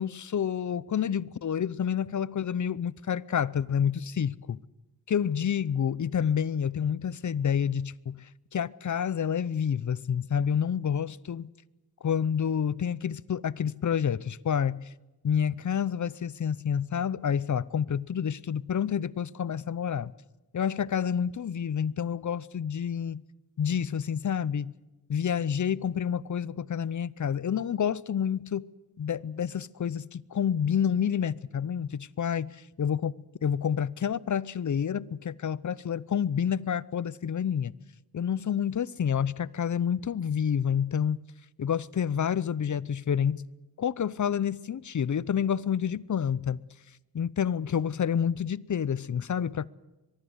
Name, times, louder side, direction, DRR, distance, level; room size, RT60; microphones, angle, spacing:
voice 1, 0.0-4.6 5.1-8.2 8.5-11.5 12.0-14.9 15.2-20.1 20.5-23.2 23.6-24.7 25.1-28.7 29.0-33.1 33.4-37.7 38.1-41.2 41.6-43.4 43.8-46.6 47.1-49.7, left 8 dB, 50° left, 0.7 m, -28 dB
23.0 x 23.0 x 8.1 m
cardioid pair, 70°, 38 cm